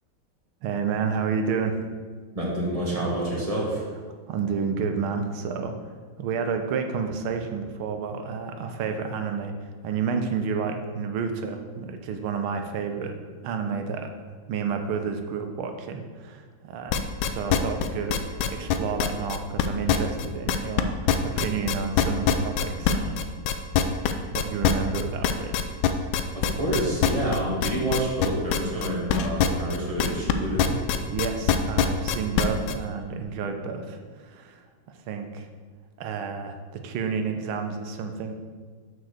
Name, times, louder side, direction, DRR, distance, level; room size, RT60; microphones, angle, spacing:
voice 1, 0.6-1.8 4.3-5.9 6.2-13.1 13.4-14.1 14.5-23.2 24.3-25.5 31.1-35.5 36.0-38.3, right 5 dB, 85° right, 5 dB, 1.6 m, -30 dB
voice 2, 2.3-3.8 26.3-30.7, right 1 dB, 20° right, -5 dB, 1.7 m, -28 dB
sound 1, 16.9-20.8 21.1-30.3 30.6-32.7, left 9 dB, 75° left, 1.3 m, -23 dB
6.5 x 4.6 x 6.5 m, 1.5 s
omnidirectional pair, 2.3 m